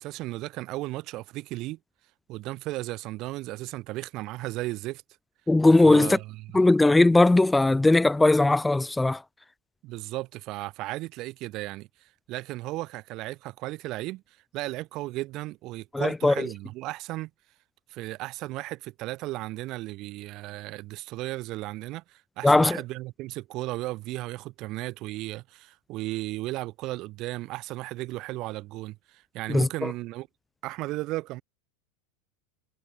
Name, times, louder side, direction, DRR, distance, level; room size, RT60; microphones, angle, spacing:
voice 1, 0.0-1.8 2.3-5.0 5.8-6.6 9.8-11.9 12.3-14.2 14.5-17.3 17.9-30.3 30.6-31.4, right 18 dB, 50° right, 6.2 m, -35 dB
voice 2, 5.5-6.2 6.5-9.2 15.9-16.5 22.4-22.8 29.5-29.9, left 2 dB, 10° left, 2.9 m, -19 dB
hypercardioid pair, 95°, 0 cm